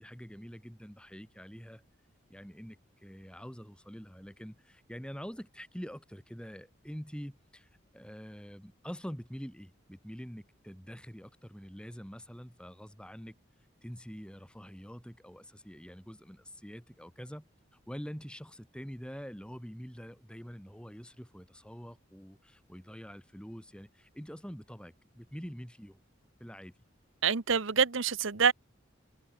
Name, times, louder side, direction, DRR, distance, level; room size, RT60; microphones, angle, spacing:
voice 1, 0.0-1.8 2.3-13.4 13.8-17.5 17.9-26.0 26.4-26.7, equal, 5° left, 5.4 m, -45 dB
voice 2, 27.2-28.5, right 6 dB, 70° right, 1.1 m, -26 dB
head